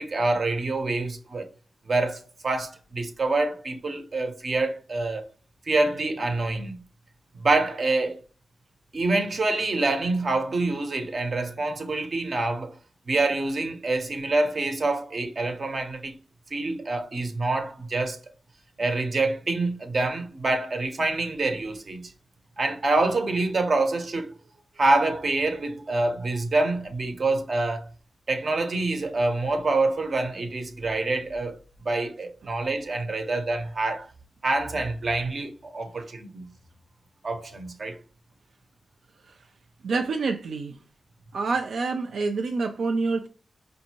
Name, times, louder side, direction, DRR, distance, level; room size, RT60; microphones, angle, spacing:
voice 1, 0.0-1.4 1.9-5.2 5.7-6.8 7.4-8.1 8.9-12.7 13.1-16.2 16.5-18.2 18.8-22.1 22.6-24.3 24.8-27.8 28.3-31.6 31.8-34.1 34.4-36.5 37.2-38.0, right 2 dB, 50° right, 0.8 m, -26 dB
voice 2, 39.8-40.8 41.3-43.3, right 4 dB, 85° right, 0.3 m, -27 dB
5.2 x 2.6 x 2.9 m
wide cardioid pair, 120°, 0 cm